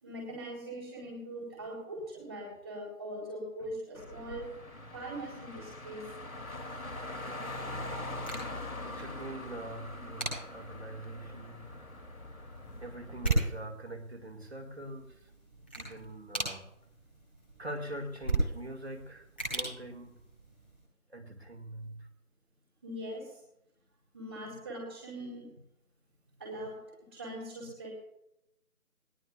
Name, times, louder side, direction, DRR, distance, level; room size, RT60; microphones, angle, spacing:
voice 1, 0.0-4.5 4.9-6.1 22.8-23.4 24.1-25.6 26.4-26.8 27.1-27.9, right 1 dB, 10° right, -10 dB, 2.1 m, -41 dB
Car, 3.9-13.5, left 2 dB, 65° left, 2.7 m, -42 dB
sound 1, 7.1-20.8, right 2 dB, 5° left, 1.9 m, -38 dB
voice 2, 8.8-11.7 12.8-15.3 15.8-16.6 17.6-20.2 21.1-22.1, right 1 dB, 45° right, 5 dB, 2.1 m, -43 dB
20.5 x 19.5 x 2.4 m, 0.81 s
figure-of-eight pair, 170°, 45 cm